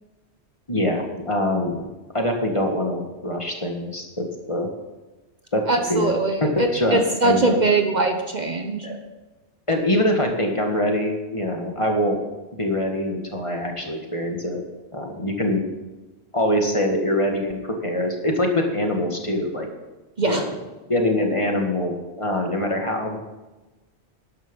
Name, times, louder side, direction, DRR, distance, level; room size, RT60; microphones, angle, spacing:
voice 1, 0.7-1.9 2.1-4.7 5.5-6.1 6.4-7.6 8.8-9.0 9.7-12.2 12.6-14.6 14.9-15.6 16.3-19.7 20.2-20.5 20.9-23.2, left 1 dB, 30° left, 2 dB, 1.8 m, -24 dB
voice 2, 5.7-8.9 20.2-20.4, right 3 dB, 45° right, 4 dB, 1.1 m, -22 dB
12.5 x 11.0 x 5.4 m, 1.1 s
omnidirectional pair, 1.1 m